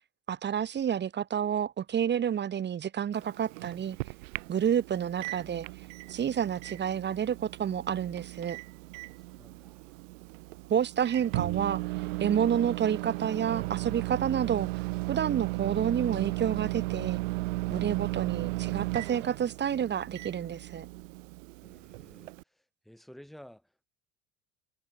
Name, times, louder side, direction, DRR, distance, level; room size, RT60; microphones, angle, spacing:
voice 1, 0.3-4.0 4.5-5.7 6.1-8.6 10.7-11.8 12.2-14.7 15.1-17.2 17.7-20.9, right 9 dB, 30° right, 0.8 m, -29 dB
Microwave oven, 3.1-22.4, right 23 dB, 85° right, 1.5 m, -36 dB
voice 2, 9.2-10.0 21.6-23.9, equal, ahead, 2.7 m, -54 dB
supercardioid pair, 90°, 37 cm